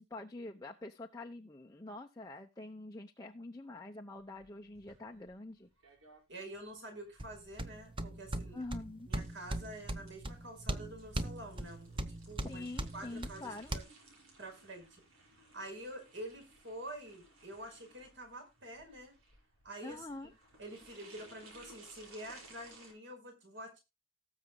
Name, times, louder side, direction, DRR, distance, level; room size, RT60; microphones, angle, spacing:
voice 1, 0.0-5.7 8.5-9.1 12.4-13.8 19.8-20.3, left 2 dB, 15° left, 2 dB, 0.8 m, -45 dB
sound 1, 4.2-22.9, right 2 dB, 80° right, 5.6 m, -60 dB
voice 2, 6.3-8.6 9.1-12.6 12.9-13.8 14.4-15.0 15.4-19.1 19.6-20.0 20.6-23.8, right 1 dB, 55° right, 4 dB, 5.0 m, -47 dB
sound 2, 7.2-13.8, right 1 dB, 25° right, 0.8 m, -40 dB
18.5 x 7.3 x 2.3 m, 0.25 s
head